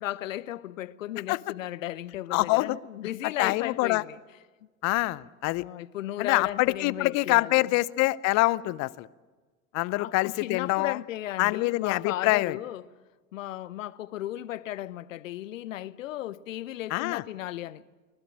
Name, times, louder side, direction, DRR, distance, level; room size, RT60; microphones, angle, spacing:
voice 1, 0.0-4.2 5.6-7.8 9.9-12.8 13.3-17.8, left 13 dB, 75° left, 0.8 m, -35 dB
voice 2, 2.3-2.8 3.4-4.0 4.8-5.7 6.2-9.1 9.7-11.0 11.4-12.6 16.9-17.2, left 21 dB, 45° left, 0.7 m, -25 dB
25.0 x 19.5 x 8.7 m
hypercardioid pair, 85°, 40 cm